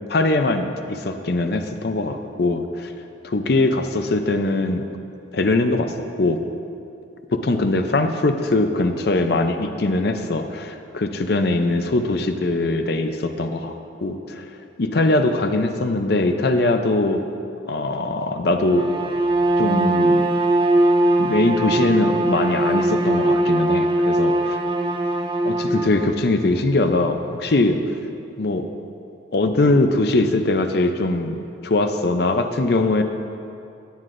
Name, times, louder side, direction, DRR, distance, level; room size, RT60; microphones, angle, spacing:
voice 1, 0.1-2.9 3.3-4.8 5.3-6.4 7.3-13.7 14.0-14.4 14.8-17.3 17.7-18.9 19.6-20.4 21.2-24.6 25.4-27.8 28.4-28.7 29.3-33.0, left 2 dB, 60° left, 7 dB, 0.6 m, -21 dB
Bowed string instrument, 18.6-26.2, right 1 dB, 30° right, 0.5 m, -20 dB
17.0 x 9.4 x 2.6 m, 2.6 s
head